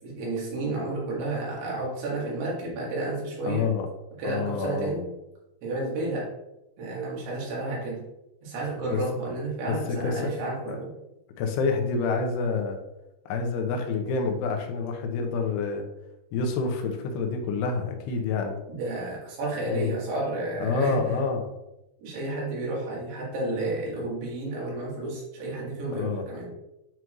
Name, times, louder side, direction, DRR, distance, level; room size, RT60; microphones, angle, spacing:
voice 1, 0.0-3.7 4.2-5.1 5.6-6.3 6.8-8.0 8.4-10.9 18.7-21.0 22.0-26.5, right 2 dB, 80° right, -4 dB, 3.9 m, -31 dB
voice 2, 3.5-3.9 4.2-5.0 8.9-9.0 9.6-10.3 10.7-10.8 11.4-12.8 13.3-15.9 16.3-18.6 19.7-19.9 20.6-21.5 25.9-26.2, left 4 dB, 85° left, 3 dB, 2.9 m, -28 dB
9.2 x 4.6 x 2.4 m, 0.90 s
omnidirectional pair, 4.7 m